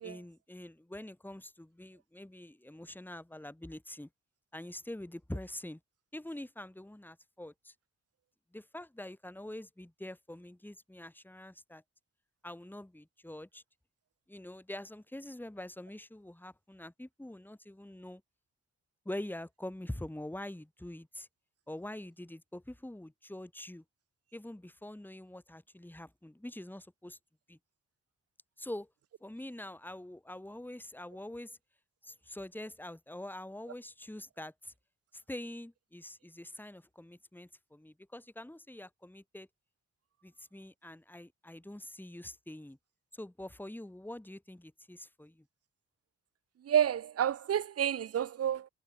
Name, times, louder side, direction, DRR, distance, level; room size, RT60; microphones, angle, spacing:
voice 1, 0.0-4.1 4.5-5.8 6.1-7.7 8.5-11.8 12.4-13.6 14.3-18.2 19.0-21.3 21.7-23.8 24.3-27.2 27.5-27.6 28.6-28.9 29.2-31.6 32.0-34.7 35.1-39.5 40.2-42.8 43.1-45.5, left 1 dB, 5° left, 2.3 m, -45 dB
voice 2, 46.6-48.7, right 9 dB, 55° right, 0.6 m, -29 dB
cardioid pair, 65°, 30 cm